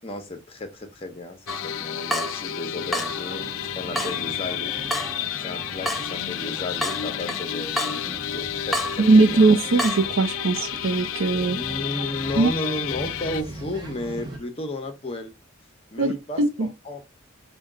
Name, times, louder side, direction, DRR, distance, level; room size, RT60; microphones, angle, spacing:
voice 1, 0.0-1.4 1.6-4.7 5.4-8.0 8.3-9.4 11.5-15.3 15.9-16.4 16.8-17.0, left 1 dB, 30° left, 0.7 m, -33 dB
sound 1, 1.5-13.4, left 11 dB, 90° left, 0.3 m, -31 dB
Water tap faucet / Drip, 1.5-10.1, equal, ahead, 0.4 m, -33 dB
sound 2, 2.7-14.4, right 2 dB, 20° right, 0.8 m, -41 dB
voice 2, 9.0-11.6 12.4-12.5 16.0-16.7, right 3 dB, 85° right, 0.6 m, -20 dB
4.3 x 2.2 x 3.6 m
head